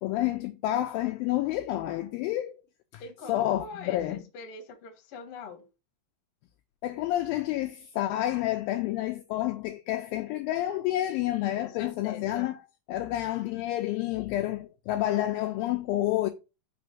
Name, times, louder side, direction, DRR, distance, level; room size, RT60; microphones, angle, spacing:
voice 1, 0.0-2.6 2.9-4.3 6.8-16.3, left 14 dB, 85° left, 2.1 m, -29 dB
voice 2, 3.0-5.6 11.5-12.5, left 4 dB, 65° left, 1.4 m, -43 dB
5.9 x 3.4 x 5.7 m
omnidirectional pair, 4.6 m